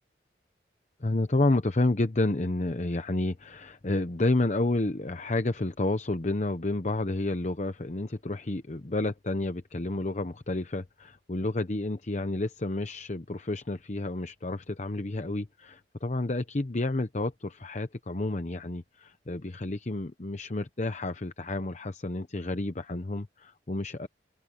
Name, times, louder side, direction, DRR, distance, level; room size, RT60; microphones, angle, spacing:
voice 1, 1.0-24.1, left 2 dB, 40° left, 0.9 m, -30 dB
open air
head